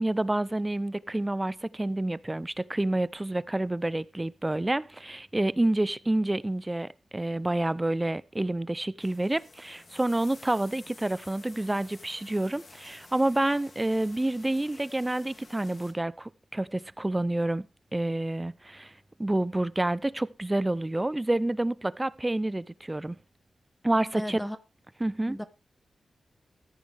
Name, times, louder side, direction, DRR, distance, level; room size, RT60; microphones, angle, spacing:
voice 1, 0.0-17.7 17.9-18.9 19.2-23.2 23.8-24.4 25.0-25.4, right 1 dB, 20° right, 0.6 m, -28 dB
sound 1, 9.0-15.9, left 3 dB, 50° left, 2.6 m, -52 dB
voice 2, 24.1-24.6 25.3-25.4, equal, 5° left, 1.1 m, -34 dB
14.5 x 9.5 x 3.5 m
cardioid pair, 55°, 0 cm